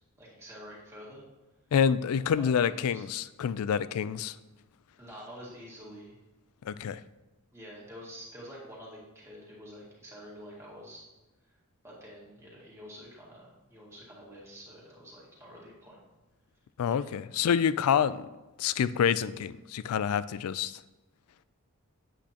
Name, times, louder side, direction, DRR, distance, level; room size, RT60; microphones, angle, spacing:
voice 1, 0.2-1.2 2.4-3.0 5.0-6.2 7.5-11.0 11.8-16.0 16.9-17.1, equal, 10° right, -6 dB, 2.2 m, -48 dB
voice 2, 1.7-4.4 6.6-7.0 16.8-18.3 18.6-20.8, left 7 dB, 75° left, 16 dB, 0.3 m, -27 dB
8.3 x 8.2 x 2.9 m, 1.1 s
head